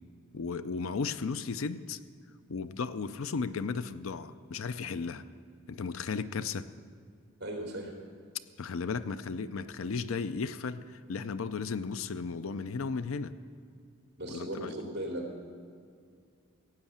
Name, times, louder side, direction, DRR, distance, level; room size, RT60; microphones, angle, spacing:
voice 1, 0.3-2.0 2.5-5.2 5.7-6.7 8.6-13.4 14.3-14.7, left 5 dB, 70° left, 13 dB, 0.5 m, -35 dB
voice 2, 7.4-7.9 14.2-15.4, right 1 dB, 50° right, 0 dB, 3.2 m, -37 dB
15.5 x 9.0 x 7.3 m, 2.2 s
head